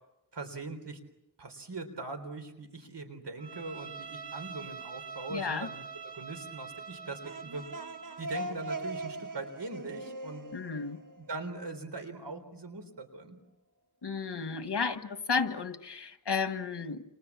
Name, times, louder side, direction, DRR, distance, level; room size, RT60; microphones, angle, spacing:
voice 1, 0.3-1.0 1.4-7.6 8.2-10.4 11.2-13.4, right 3 dB, 90° right, 7 dB, 3.9 m, -41 dB
Bowed string instrument, 3.4-8.3, right 6 dB, 75° right, 0.9 m, -44 dB
voice 2, 5.3-5.7 10.5-11.0 14.0-17.0, left 5 dB, 80° left, 9 dB, 1.7 m, -33 dB
sound 1, 7.0-11.8, right 1 dB, 50° right, 1.3 m, -41 dB
29.0 x 27.0 x 7.3 m, 0.92 s
wide cardioid pair, 80°, 40 cm